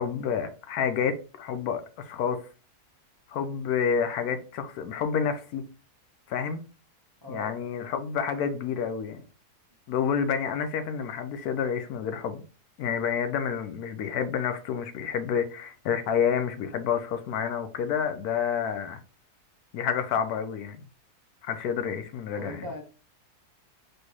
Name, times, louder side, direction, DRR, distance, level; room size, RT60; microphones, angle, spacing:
voice 1, 0.0-2.4 3.3-5.6 6.3-6.6 7.3-9.2 9.9-12.4 12.8-19.0 19.7-20.8 21.4-22.7, left 7 dB, 75° left, 1.1 m, -29 dB
voice 2, 7.2-7.5 22.3-22.8, left 1 dB, 30° right, 0.4 m, -38 dB
4.4 x 3.2 x 3.0 m
omnidirectional pair, 1.7 m